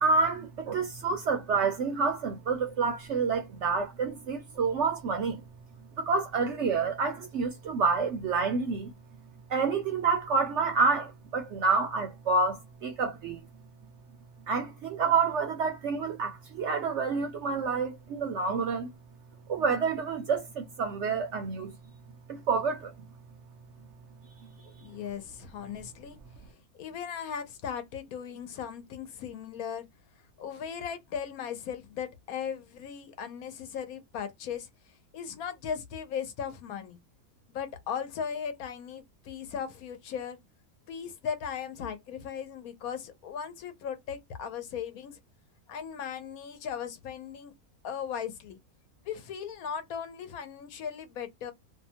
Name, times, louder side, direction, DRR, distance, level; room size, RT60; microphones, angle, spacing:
voice 1, 0.0-5.4 6.0-8.9 9.5-13.4 14.5-18.9 19.5-21.8 22.3-22.9, right 4 dB, 65° right, 0.7 m, -28 dB
voice 2, 24.8-26.2 26.4-29.9 30.4-34.7 35.1-37.0 37.5-40.4 40.9-45.2 45.7-47.5 47.8-48.6 49.1-51.5, left 7 dB, 75° left, 1.1 m, -37 dB
2.7 x 2.2 x 2.7 m
omnidirectional pair, 1.6 m